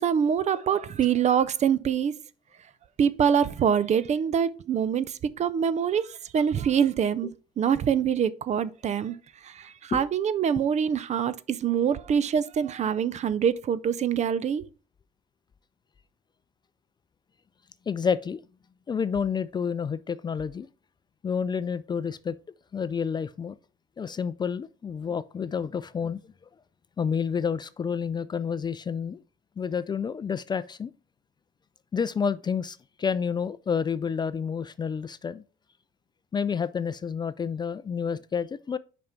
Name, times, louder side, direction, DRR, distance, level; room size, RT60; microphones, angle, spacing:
voice 1, 0.0-2.1 3.0-7.3 7.6-9.2 9.4-14.6, right 8 dB, 45° right, 0.5 m, -25 dB
voice 2, 17.9-18.4 18.9-20.7 21.2-22.4 22.7-23.6 24.0-26.2 27.0-29.2 29.6-30.9 31.9-35.4 36.3-38.8, left 6 dB, 25° left, 0.3 m, -29 dB
5.5 x 5.2 x 5.7 m
cardioid pair, 110°, 17 cm